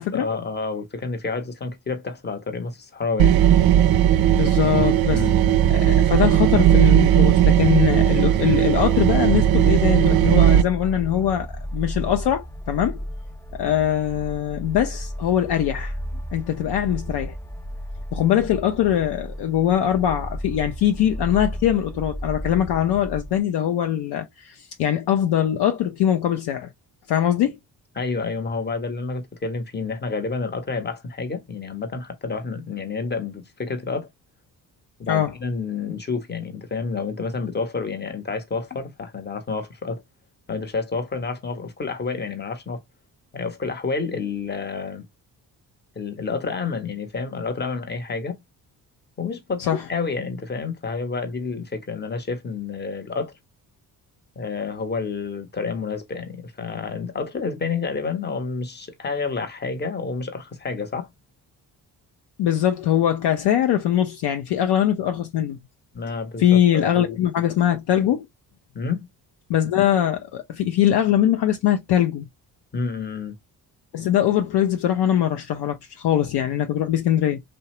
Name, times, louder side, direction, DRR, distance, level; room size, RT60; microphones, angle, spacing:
voice 1, 0.0-3.4 5.1-5.6 28.0-34.1 35.0-40.0 40.5-42.8 43.3-45.0 46.0-48.4 49.2-53.3 54.4-61.1 65.9-67.2 68.7-69.1 72.7-73.4, left 4 dB, 20° left, 0.9 m, -29 dB
sound 1, 3.2-10.6, right 11 dB, 50° right, 0.5 m, -17 dB
voice 2, 4.3-5.2 5.7-11.5 11.7-13.0 13.5-16.0 16.3-17.4 18.1-26.7 27.1-27.6 35.1-35.3 49.7-49.8 62.4-65.6 66.4-68.3 69.5-72.2 73.9-77.4, left 10 dB, 60° left, 0.6 m, -22 dB
sound 2, 8.1-23.4, equal, 5° left, 0.4 m, -34 dB
2.6 x 2.1 x 3.0 m
hypercardioid pair, 45°, 48 cm